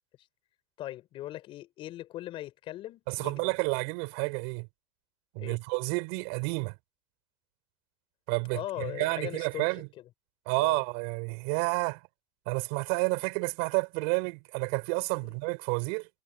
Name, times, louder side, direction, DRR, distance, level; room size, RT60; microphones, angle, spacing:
voice 1, 0.8-3.5 5.4-5.6 8.5-10.1 10.6-10.8 15.2-15.3, left 14 dB, 45° left, 5.2 m, -40 dB
voice 2, 3.1-4.7 5.3-6.8 8.3-9.9 10.5-12.0 12.5-16.1, right 33 dB, 70° right, 5.5 m, -30 dB
supercardioid pair, 135°, 12 cm